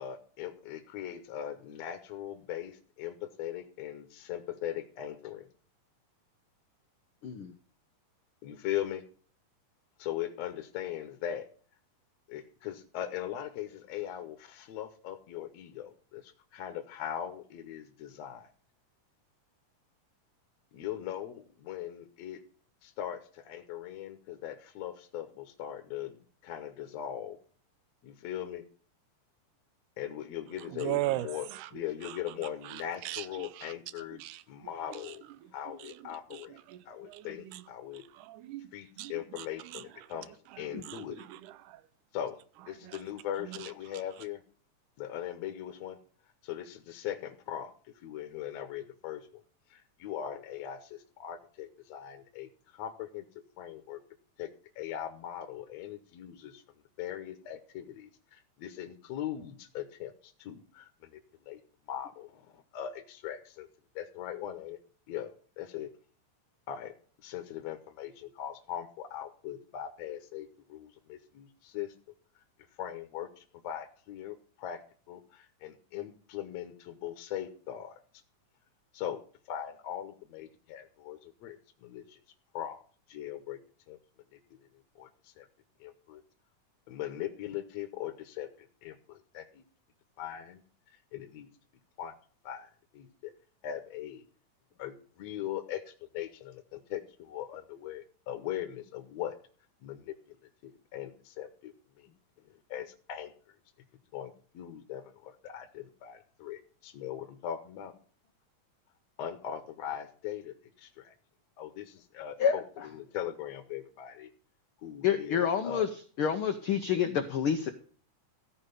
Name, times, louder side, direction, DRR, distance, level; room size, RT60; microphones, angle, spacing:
voice 1, 0.0-5.5 8.4-9.1 10.0-11.5 12.3-18.5 20.7-22.4 22.8-27.4 28.0-28.6 30.0-34.2 34.5-35.2 35.5-36.6 36.9-38.0 38.7-41.3 42.1-42.4 42.7-44.4 45.0-46.0 46.4-49.4 49.7-53.3 53.6-54.0 54.4-54.5 54.8-56.6 57.0-61.2 61.5-61.6 61.9-63.7 64.0-64.8 65.1-65.9 66.7-66.9 67.2-71.9 72.8-74.8 75.1-78.0 78.9-79.2 79.5-82.2 82.5-82.8 83.1-83.6 83.9-84.0 85.0-85.5 85.8-86.2 86.9-89.6 90.2-90.6 91.1-91.5 92.0-92.1 92.4-93.3 93.6-94.3 94.8-99.4 99.8-100.4 100.6-102.1 102.5-103.3 104.1-107.9 109.2-111.1 111.6-114.3 114.8-115.9, left 11 dB, 65° left, 2.0 m, -40 dB
voice 2, 7.2-7.5 40.7-40.8 112.4-112.5 115.0-115.9 116.2-117.7, left 8 dB, 85° left, 1.1 m, -28 dB
voice 3, 30.7-31.7 32.0-32.2 32.6-33.7 34.1-34.4 34.9-35.1 35.4-35.5 35.8-35.9 36.3-37.6 38.1-39.8 40.7-41.8 42.8-43.0 43.4-43.7, right 16 dB, 85° right, 2.1 m, -39 dB
15.0 x 5.0 x 6.6 m
omnidirectional pair, 3.6 m